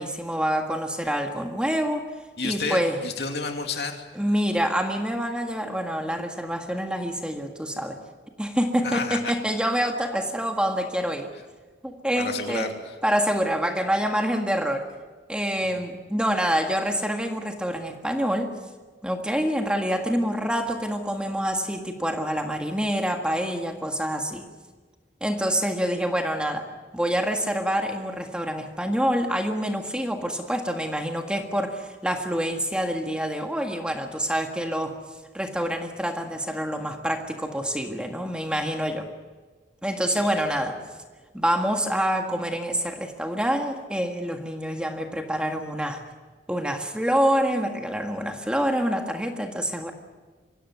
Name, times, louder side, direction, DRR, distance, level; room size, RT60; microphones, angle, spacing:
voice 1, 0.0-2.1 2.4-3.0 4.1-8.0 8.4-11.3 11.8-12.7 13.0-14.9 15.3-18.5 19.0-24.5 25.2-35.0 35.3-39.1 39.8-40.8 41.3-46.0 46.5-49.9, equal, 5° right, 3 dB, 1.7 m, -26 dB
voice 2, 2.4-4.0 8.8-9.3 12.2-12.9 40.1-40.6, left 4 dB, 65° left, 4 dB, 2.7 m, -31 dB
24.5 x 16.5 x 9.5 m, 1.4 s
head